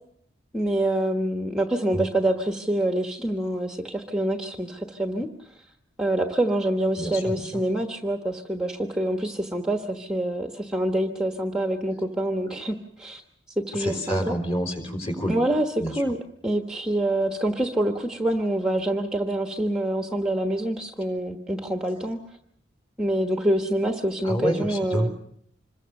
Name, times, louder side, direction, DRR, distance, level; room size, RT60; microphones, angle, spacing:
voice 1, 0.5-5.3 6.0-13.2 13.7-14.4 15.3-16.2 16.4-22.2 23.0-25.1, right 1 dB, 5° right, 4 dB, 1.2 m, -26 dB
voice 2, 7.0-7.6 12.4-12.5 13.7-15.4 15.8-16.0 24.2-25.1, equal, 30° left, 5 dB, 4.4 m, -28 dB
26.5 x 22.0 x 6.6 m, 0.68 s
head